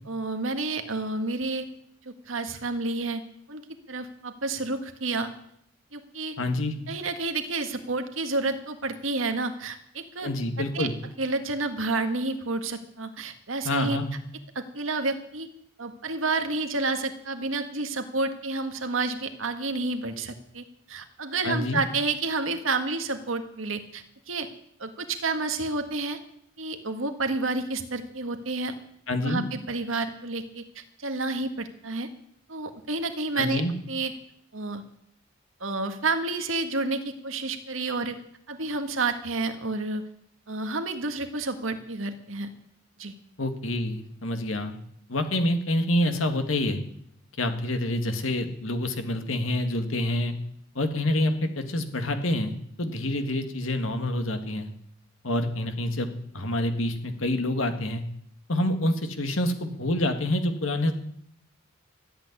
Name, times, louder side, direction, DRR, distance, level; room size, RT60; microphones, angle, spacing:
voice 1, 0.1-1.7 2.1-3.2 3.5-3.6 3.9-5.3 5.9-6.4 6.9-10.3 10.7-10.9 11.2-14.0 14.6-15.5 15.8-24.5 24.8-26.2 26.6-28.7 29.2-32.1 32.5-33.6 33.9-34.1 34.5-34.8 35.6-38.2 38.5-40.0 40.5-42.5 43.0-43.1, right 3 dB, 80° right, 7 dB, 1.7 m, -30 dB
voice 2, 6.4-6.7 10.2-10.9 13.6-14.1 21.4-21.8 29.1-29.5 33.4-33.7 43.4-44.8 45.1-46.8 47.4-50.3 50.8-54.7 55.2-56.1 56.3-58.0 58.5-60.9, left 1 dB, 85° left, 7 dB, 1.9 m, -27 dB
13.5 x 8.6 x 9.7 m, 0.70 s
head